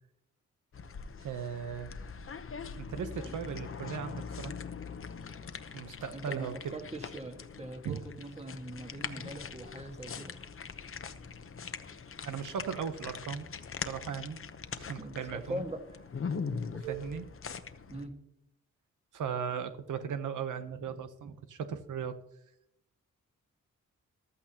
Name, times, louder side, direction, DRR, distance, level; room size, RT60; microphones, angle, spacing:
sound 1, 0.7-18.1, left 5 dB, 45° left, 0.9 m, -42 dB
voice 1, 1.2-1.9 2.8-4.5 5.7-6.7 7.8-8.0 12.2-13.5 13.8-14.4 14.7-15.6 16.9-17.2 19.1-22.2, right 7 dB, 85° right, 9 dB, 0.9 m, -37 dB
voice 2, 6.1-10.4 15.0-15.8 16.3-16.4 16.7-17.0 17.9-18.1, right 2 dB, 20° right, 5 dB, 1.7 m, -41 dB
15.0 x 12.5 x 2.9 m, 0.78 s
cardioid pair, 95°, 30 cm